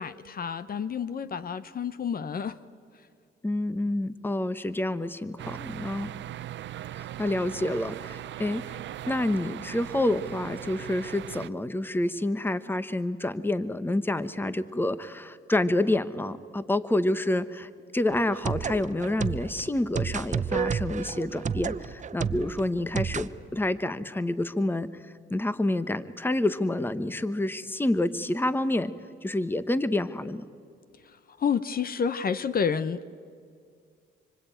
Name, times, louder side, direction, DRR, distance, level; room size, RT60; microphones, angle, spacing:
voice 1, 0.0-2.6 31.0-33.1, left 6 dB, 50° left, 14 dB, 1.0 m, -29 dB
voice 2, 3.4-6.1 7.0-8.8 9.1-24.9 25.3-28.9 29.2-30.4, left 1 dB, 10° left, 13 dB, 1.1 m, -28 dB
on the ferry, 5.4-11.5, right 12 dB, 65° right, 0.7 m, -39 dB
sound 1, 18.1-23.3, right 7 dB, 35° right, 0.9 m, -31 dB
25.5 x 25.0 x 9.1 m, 2.2 s
cardioid pair, 90°, 20 cm